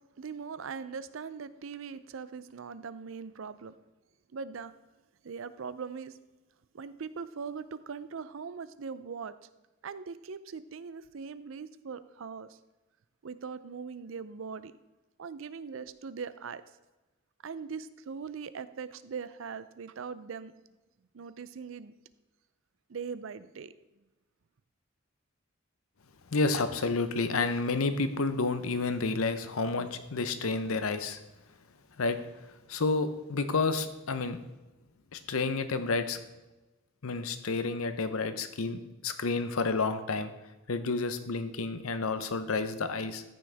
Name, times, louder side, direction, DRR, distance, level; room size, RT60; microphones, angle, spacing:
voice 1, 0.2-3.7 4.3-4.7 5.2-6.2 6.7-9.5 9.8-12.6 13.2-14.7 15.2-16.6 17.4-20.5 21.1-21.9 22.9-23.7, right 5 dB, 70° right, 14 dB, 0.5 m, -40 dB
voice 2, 26.3-31.2 32.0-32.2 32.7-34.4 35.1-36.2 37.0-40.3 40.7-43.2, left 3 dB, 85° left, 10 dB, 0.8 m, -30 dB
14.0 x 6.2 x 3.4 m, 1.1 s
head